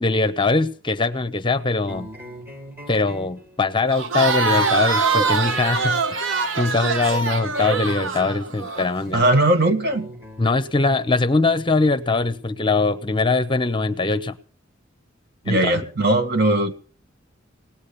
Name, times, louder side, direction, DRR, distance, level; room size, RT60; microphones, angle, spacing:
voice 1, 0.0-2.1 2.9-9.2 10.4-14.4 15.4-15.9, left 3 dB, 25° left, 11 dB, 0.8 m, -22 dB
sound 1, 1.9-13.0, equal, 10° right, 1.9 m, -42 dB
Crowd, 3.9-8.9, right 4 dB, 85° right, 1.1 m, -23 dB
voice 2, 9.1-10.1 15.5-16.8, right 1 dB, 55° right, 6 dB, 1.8 m, -19 dB
18.5 x 8.5 x 7.0 m, 0.40 s
head